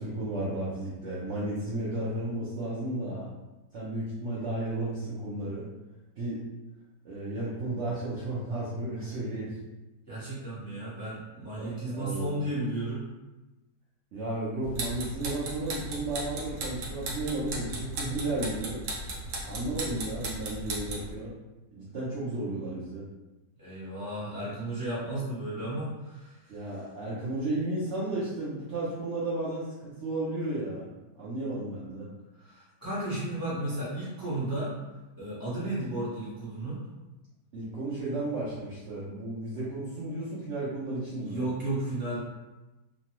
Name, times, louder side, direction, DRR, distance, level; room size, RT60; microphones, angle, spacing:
voice 1, 0.0-3.3 3.7-5.7 6.2-6.4 7.0-9.6 11.6-12.4 14.1-18.8 19.4-21.4 21.7-23.1 26.5-30.9 31.2-32.1 37.5-41.5, right 2 dB, 65° right, -8 dB, 0.7 m, -33 dB
voice 2, 10.1-13.0 23.6-26.6 32.4-34.7 35.2-36.8 41.2-42.2, right 1 dB, 20° left, -10 dB, 0.6 m, -34 dB
sound 1, 14.6-21.1, right 1 dB, 80° right, 1.3 m, -36 dB
2.9 x 2.2 x 2.9 m, 1.1 s
omnidirectional pair, 1.8 m